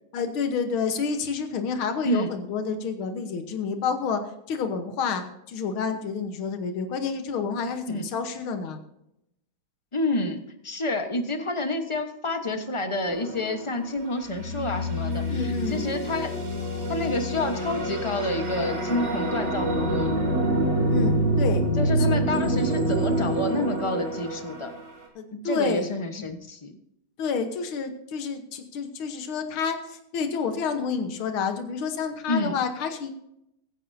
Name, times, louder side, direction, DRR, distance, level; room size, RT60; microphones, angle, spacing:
voice 1, 0.1-4.2 4.5-8.8 15.3-15.9 20.9-21.7 22.0-22.1 25.2-26.2 27.2-33.1, left 5 dB, 80° left, 7 dB, 2.0 m, -29 dB
voice 2, 9.9-16.3 16.9-20.1 21.8-24.7 25.3-26.8 32.3-32.6, left 2 dB, 20° left, 6 dB, 0.8 m, -29 dB
sound 1, 13.1-13.7 14.2-24.8, right 1 dB, 70° right, 3.9 m, -26 dB
22.5 x 9.7 x 2.7 m, 0.80 s
omnidirectional pair, 2.2 m